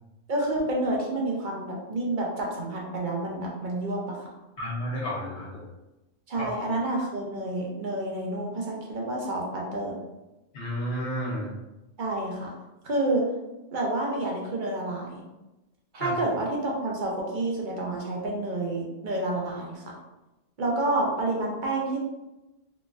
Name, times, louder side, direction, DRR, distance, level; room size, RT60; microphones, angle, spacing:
voice 1, 0.3-4.2 6.3-10.0 12.0-12.5 12.8-13.2 13.7-15.2 15.9-19.8 20.6-22.0, right 2 dB, 50° right, -2 dB, 0.7 m, -29 dB
voice 2, 4.6-5.6 6.4-6.5 10.5-11.5 16.0-16.1, equal, 60° left, -4 dB, 1.1 m, -31 dB
3.8 x 2.4 x 2.4 m, 0.99 s
omnidirectional pair, 1.3 m